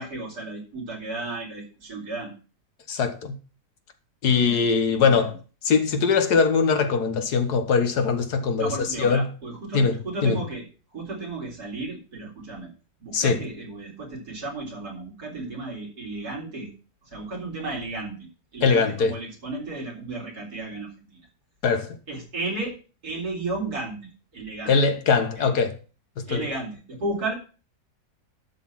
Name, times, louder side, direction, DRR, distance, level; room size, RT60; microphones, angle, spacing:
voice 1, 0.0-2.3 4.4-5.3 8.6-10.7 10.9-12.7 13.0-16.7 17.0-21.3 22.1-22.8 23.0-24.0 24.3-24.8 25.4-25.5 26.3-27.3, right 2 dB, 70° right, 4.1 m, -34 dB
voice 2, 2.9-3.4 4.2-5.4 5.6-8.7 9.0-9.3 9.7-10.4 13.1-13.4 18.6-19.1 21.6-22.0 24.7-25.8 26.2-26.5, left 5 dB, 75° left, 1.7 m, -21 dB
12.5 x 4.1 x 7.2 m
omnidirectional pair, 1.7 m